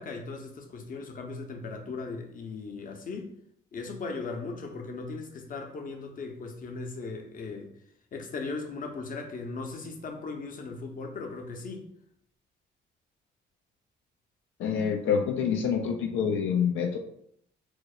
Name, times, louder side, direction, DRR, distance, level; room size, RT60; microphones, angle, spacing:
voice 1, 0.0-3.3 3.7-7.7 8.1-11.9, left 3 dB, 45° left, 3 dB, 0.7 m, -38 dB
voice 2, 14.6-17.0, left 7 dB, 80° left, 3 dB, 0.4 m, -27 dB
4.5 x 2.0 x 2.3 m, 0.70 s
cardioid pair, 90°, 20 cm